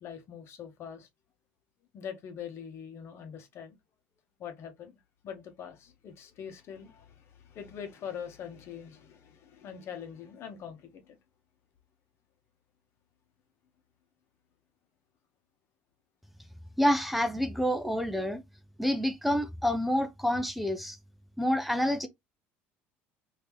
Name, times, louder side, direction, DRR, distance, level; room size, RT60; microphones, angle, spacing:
voice 1, 0.0-1.1 1.9-3.8 4.4-11.2, left 8 dB, 55° left, 1.0 m, -43 dB
voice 2, 16.8-18.4 18.8-21.0 21.4-22.1, equal, ahead, 0.5 m, -28 dB
3.6 x 2.8 x 3.0 m
supercardioid pair, 95°, 5 cm